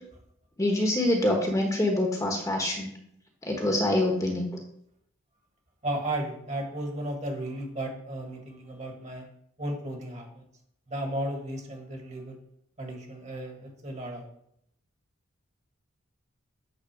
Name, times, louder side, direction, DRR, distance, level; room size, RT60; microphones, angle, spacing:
voice 1, 0.6-2.9 3.4-4.5, left 1 dB, 15° left, 1 dB, 1.2 m, -25 dB
voice 2, 5.8-9.2 9.6-10.4 10.9-12.4 12.8-14.3, right 1 dB, 35° right, 2 dB, 1.7 m, -34 dB
8.6 x 4.0 x 6.0 m, 0.73 s
head